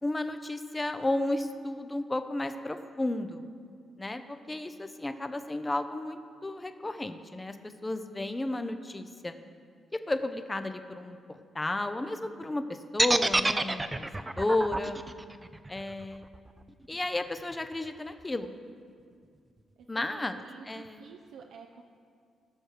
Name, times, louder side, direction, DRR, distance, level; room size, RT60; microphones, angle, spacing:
voice 1, 0.0-3.4 4.0-7.6 7.8-9.4 9.9-11.2 11.5-15.0 15.7-16.3 16.9-18.5 19.9-21.1, left 2 dB, 20° left, 9 dB, 0.7 m, -33 dB
sound 1, 13.0-17.0, right 2 dB, 20° right, 0.5 m, -28 dB
voice 2, 19.8-21.8, right 6 dB, 80° right, 1 dB, 0.6 m, -50 dB
17.0 x 6.3 x 5.0 m, 2.2 s
supercardioid pair, 65°, 0 cm